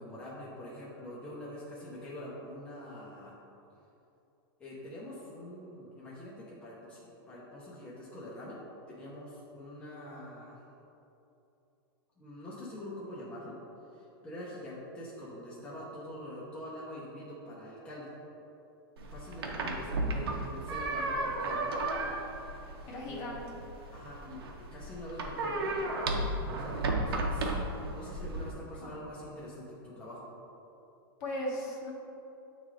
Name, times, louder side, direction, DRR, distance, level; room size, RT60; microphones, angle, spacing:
voice 1, 0.0-3.4 4.6-8.6 8.9-10.6 12.2-13.6 13.9-18.1 19.1-21.8 22.8-23.3 23.9-26.0 26.5-27.5 27.9-30.3, left 1 dB, 10° left, -8 dB, 0.7 m, -45 dB
sound 1, 19.0-28.5, right 2 dB, 85° right, 0.8 m, -34 dB
voice 2, 21.8-22.1 22.9-23.4 28.8-28.9 31.2-31.9, left 1 dB, 35° left, -2 dB, 1.0 m, -37 dB
7.9 x 3.2 x 3.7 m, 2.9 s
supercardioid pair, 165°, 12 cm